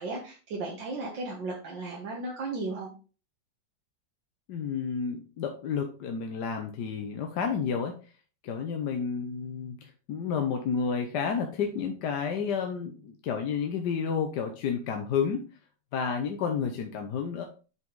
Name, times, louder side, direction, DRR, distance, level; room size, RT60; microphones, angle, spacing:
voice 1, 0.0-2.9, right 3 dB, 80° right, -2 dB, 2.1 m, -35 dB
voice 2, 4.5-7.9 8.4-15.4 15.9-17.4, left 6 dB, 70° left, 4 dB, 1.4 m, -31 dB
8.2 x 5.0 x 3.8 m, 0.35 s
omnidirectional pair, 2.0 m